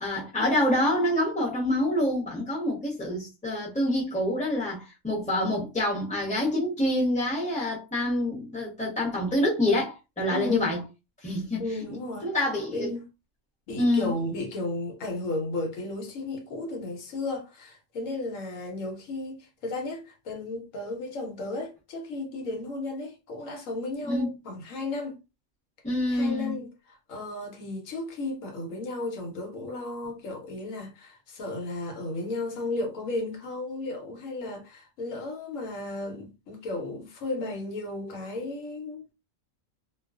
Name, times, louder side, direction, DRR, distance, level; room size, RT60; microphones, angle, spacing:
voice 1, 0.0-10.8 11.2-11.6 12.2-12.9 13.8-14.1 24.0-24.3 25.8-26.6, left 1 dB, 5° left, 0.8 m, -26 dB
voice 2, 10.3-10.8 11.6-12.3 12.7-13.1 13.7-25.2 26.1-39.1, left 2 dB, 80° left, 1.1 m, -34 dB
2.3 x 2.3 x 2.4 m
omnidirectional pair, 1.4 m